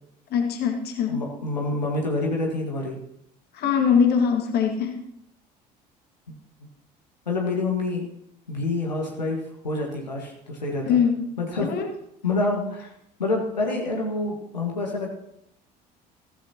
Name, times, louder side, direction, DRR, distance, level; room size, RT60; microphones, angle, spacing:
voice 1, 0.3-1.2 3.5-5.0 10.8-11.2 11.6-11.9, left 7 dB, 50° left, 3 dB, 2.0 m, -22 dB
voice 2, 1.1-3.0 6.3-6.4 7.2-8.1 8.5-9.4 9.6-11.0 11.4-11.7 12.2-12.9 13.2-15.1, left 2 dB, 85° left, -1 dB, 1.7 m, -27 dB
15.0 x 14.5 x 2.9 m, 0.78 s
figure-of-eight pair, 60°, 21 cm